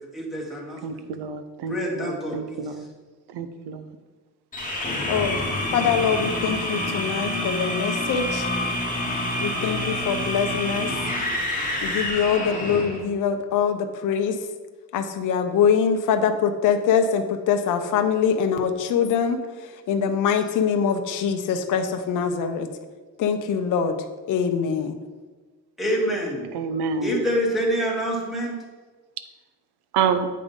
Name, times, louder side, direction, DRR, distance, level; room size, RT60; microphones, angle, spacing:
voice 1, 0.0-1.0 1.7-2.7 25.8-26.4 27.0-28.5, equal, ahead, -3 dB, 1.2 m, -26 dB
voice 2, 0.8-2.8 3.3-3.9 26.5-27.3 29.9-30.3, right 6 dB, 90° right, 11 dB, 0.7 m, -28 dB
sound 1, 4.5-13.0, left 1 dB, 20° left, 1.1 m, -27 dB
voice 3, 5.1-5.4 5.7-8.5 9.4-10.9 11.8-14.4 14.9-19.4 19.9-22.7 23.2-23.9 24.3-25.0, left 7 dB, 55° left, 6 dB, 0.6 m, -23 dB
8.4 x 3.7 x 5.2 m, 1.3 s
cardioid pair, 170°, 38 cm